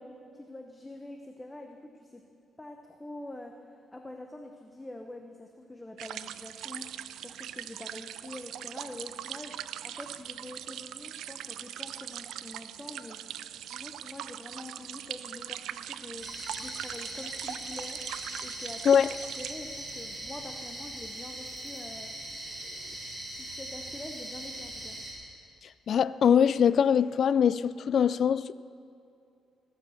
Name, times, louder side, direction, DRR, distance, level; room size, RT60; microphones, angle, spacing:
voice 1, 0.3-2.2 2.6-9.6 9.8-13.2 13.7-18.0 18.4-19.0 19.4-22.1 22.6-25.0, left 1 dB, 15° left, 0.8 m, -45 dB
sound 1, 6.0-19.5, right 11 dB, 80° right, 0.4 m, -41 dB
sound 2, 16.2-25.1, right 1 dB, 20° right, 4.2 m, -40 dB
voice 2, 25.9-28.6, left 8 dB, 60° left, 0.3 m, -23 dB
17.0 x 7.6 x 7.0 m
cardioid pair, 90°, 0 cm